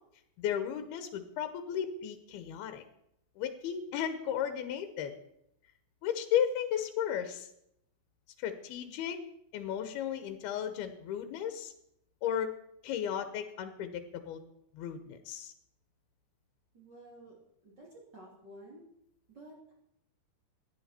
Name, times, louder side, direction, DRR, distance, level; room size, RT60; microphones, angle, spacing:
voice 1, 0.4-2.8 3.4-5.1 6.0-7.5 8.4-9.2 9.5-11.7 12.2-12.6 12.8-14.4 14.7-15.5, left 9 dB, 85° left, 9 dB, 2.9 m, -34 dB
voice 2, 16.7-17.4 17.6-18.8 19.3-19.7, right 1 dB, 30° right, -4 dB, 3.1 m, -52 dB
17.5 x 11.0 x 4.3 m, 0.77 s
omnidirectional pair, 4.4 m